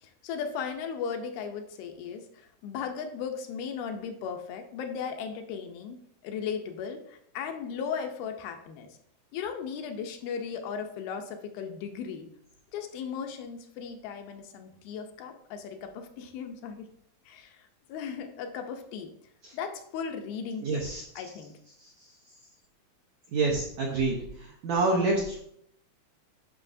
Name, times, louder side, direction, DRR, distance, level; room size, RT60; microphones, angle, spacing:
voice 1, 0.0-6.0 6.2-8.9 9.3-12.3 12.7-16.9 17.3-17.6 17.9-19.1 19.5-20.8 21.2-21.5, left 6 dB, 80° left, 5 dB, 2.5 m, -36 dB
voice 2, 20.6-21.0 23.3-24.1 24.6-25.5, right 3 dB, 75° right, -2 dB, 1.6 m, -26 dB
9.7 x 5.9 x 2.6 m, 0.72 s
omnidirectional pair, 4.5 m